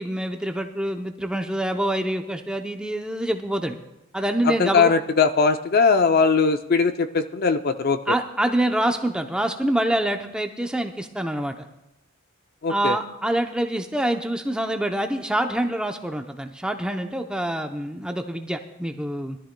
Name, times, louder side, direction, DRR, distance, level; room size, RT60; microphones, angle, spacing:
voice 1, 0.0-3.8 4.1-4.9 8.1-11.5 12.7-19.4, right 1 dB, 5° right, 5 dB, 0.6 m, -26 dB
voice 2, 4.4-8.1 12.6-13.0, left 5 dB, 40° left, 9 dB, 0.4 m, -20 dB
21.0 x 12.5 x 2.2 m, 0.89 s
head